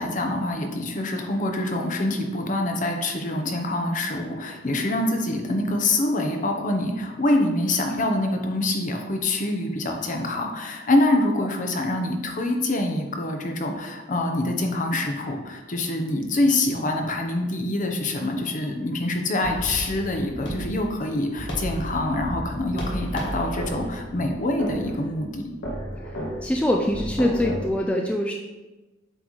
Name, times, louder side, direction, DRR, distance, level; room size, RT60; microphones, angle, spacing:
voice 1, 0.0-25.4, left 2 dB, 45° left, 3 dB, 0.8 m, -25 dB
sound 1, 19.4-27.7, equal, 75° left, 1.3 m, -33 dB
voice 2, 26.4-28.3, left 1 dB, 5° left, 1 dB, 0.3 m, -23 dB
7.8 x 4.0 x 3.1 m, 1.1 s
head